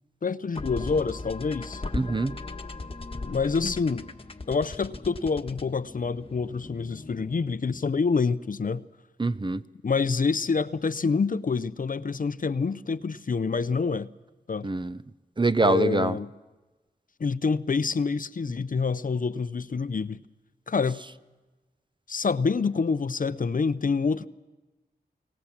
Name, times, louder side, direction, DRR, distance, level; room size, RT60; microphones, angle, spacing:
voice 1, 0.2-1.8 3.2-4.1 4.5-8.9 9.8-14.1 14.5-14.7 15.6-16.3 17.2-20.2 20.7-21.0 22.1-24.3, left 4 dB, 50° left, 0.6 m, -27 dB
sound 1, 0.6-7.9, left 3 dB, 30° left, 1.3 m, -38 dB
voice 2, 1.9-2.4 9.2-9.6 14.6-15.0 15.4-16.2, right 2 dB, 25° right, 0.6 m, -25 dB
24.0 x 18.5 x 7.3 m
wide cardioid pair, 65°, 18 cm